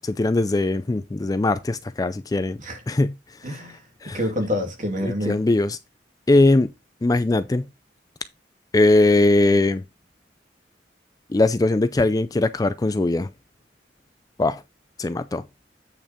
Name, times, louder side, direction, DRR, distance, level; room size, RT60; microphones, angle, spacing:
voice 1, 0.0-2.6 2.9-3.1 4.0-4.2 5.0-5.8 6.3-6.7 7.0-7.6 8.7-9.8 11.3-13.3 14.4-14.6 15.0-15.4, left 2 dB, 20° left, 0.3 m, -20 dB
voice 2, 3.4-5.4, left 1 dB, 45° right, 2.8 m, -28 dB
8.7 x 5.4 x 3.6 m
head